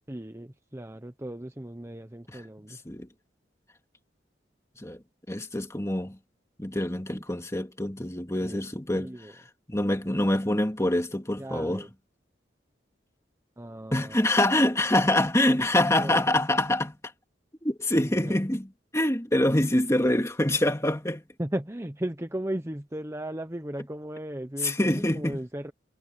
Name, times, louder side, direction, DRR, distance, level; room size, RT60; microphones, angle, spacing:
voice 1, 0.1-2.8 8.4-8.6 8.9-9.3 11.4-11.9 13.6-14.2 15.7-16.2 18.0-18.4 21.4-25.7, right 1 dB, 15° right, 1.0 m, -36 dB
voice 2, 5.3-6.2 6.6-11.8 13.9-17.0 17.6-21.2 24.6-25.4, left 1 dB, 15° left, 2.3 m, -25 dB
head